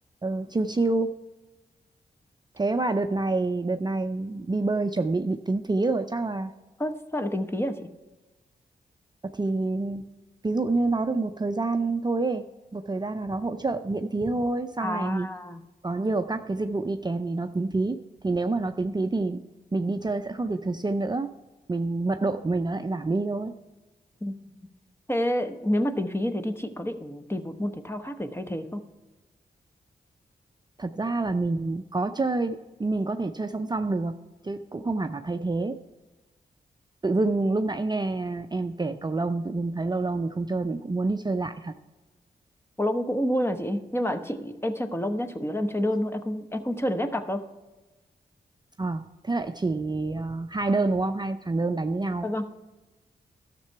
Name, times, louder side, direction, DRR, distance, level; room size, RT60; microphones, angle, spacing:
voice 1, 0.2-1.1 2.6-6.5 9.3-10.0 10.4-12.4 12.7-15.3 15.8-19.4 19.7-21.3 21.7-23.5 30.8-34.1 34.4-35.8 37.0-41.7 48.8-52.3, right 3 dB, 25° right, 7 dB, 0.5 m, -27 dB
voice 2, 6.8-7.9 14.8-15.6 24.2-24.4 25.1-28.8 42.8-47.4 52.2-52.6, equal, 15° left, 8 dB, 1.0 m, -28 dB
12.5 x 6.8 x 4.6 m, 1.1 s
cardioid pair, 45°, 17 cm